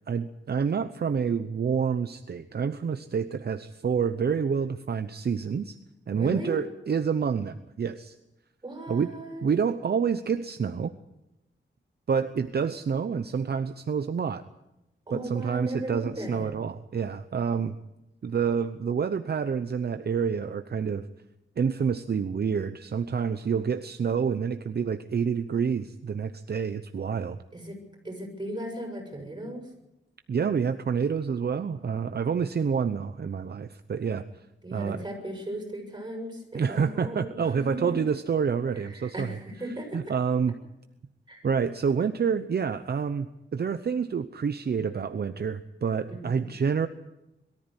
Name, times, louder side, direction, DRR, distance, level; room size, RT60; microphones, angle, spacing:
voice 1, 0.1-5.8 6.1-8.1 8.9-9.1 9.4-10.9 12.1-14.4 15.1-17.8 18.2-21.0 21.6-27.4 30.3-34.2 34.7-35.0 36.5-39.3 39.9-40.5 41.4-46.9, right 6 dB, 55° right, 10 dB, 0.8 m, -28 dB
voice 2, 6.1-6.6 8.6-9.4 15.1-16.7 27.5-27.8 28.0-29.7 34.6-37.9 38.7-40.0 41.3-41.5 46.1-46.5, right 1 dB, 20° right, 2 dB, 7.1 m, -37 dB
22.5 x 14.0 x 9.8 m, 0.91 s
wide cardioid pair, 140°, 19 cm